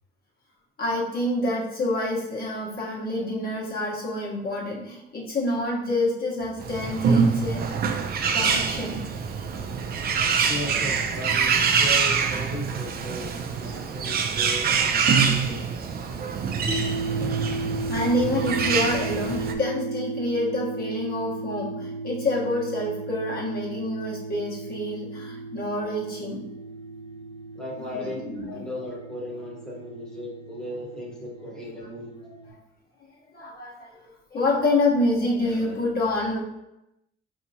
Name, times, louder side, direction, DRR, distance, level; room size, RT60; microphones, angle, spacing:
voice 1, 0.8-7.8 8.3-9.0 17.9-26.5 27.9-28.6 32.2-32.3 33.3-36.4, left 1 dB, 50° left, -4 dB, 1.2 m, -27 dB
Bird, 6.6-19.5, right 6 dB, 50° right, 0.5 m, -25 dB
voice 2, 10.3-15.9 27.5-32.2, left 1 dB, 5° left, -4 dB, 1.0 m, -37 dB
sound 1, 16.7-32.5, right 3 dB, 30° left, 1.0 m, -35 dB
4.3 x 2.8 x 2.7 m, 0.89 s
cardioid pair, 90°, 20 cm